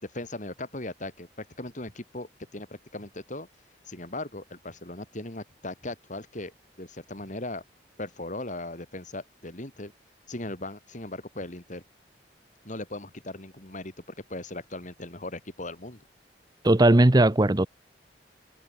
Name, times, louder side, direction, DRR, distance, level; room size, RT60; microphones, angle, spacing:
voice 1, 0.0-3.5 3.9-7.6 8.0-9.9 10.3-11.8 12.6-16.0, left 2 dB, 45° left, 4.8 m, -38 dB
voice 2, 16.6-17.7, right 1 dB, 25° right, 0.8 m, -18 dB
head